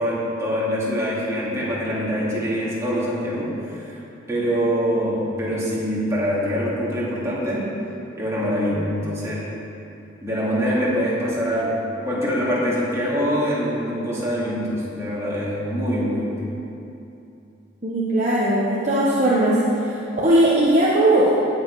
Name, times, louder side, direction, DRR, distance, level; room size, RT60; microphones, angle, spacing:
voice 1, 0.0-4.0 4.3-7.7 8.2-9.5 10.2-16.5, equal, 15° right, -7 dB, 2.7 m, -24 dB
voice 2, 17.8-19.6 19.9-21.6, right 1 dB, 35° right, -7 dB, 1.4 m, -19 dB
18.0 x 7.5 x 4.9 m, 2.8 s
head